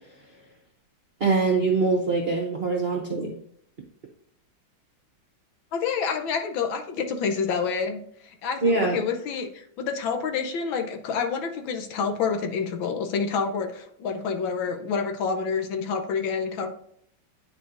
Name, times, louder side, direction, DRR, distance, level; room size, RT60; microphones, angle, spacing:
voice 1, 1.2-3.3 8.6-9.0, right 3 dB, 50° right, 0 dB, 0.7 m, -23 dB
voice 2, 5.7-16.7, left 5 dB, 75° left, 4 dB, 1.5 m, -28 dB
10.0 x 4.3 x 2.6 m, 0.68 s
omnidirectional pair, 2.2 m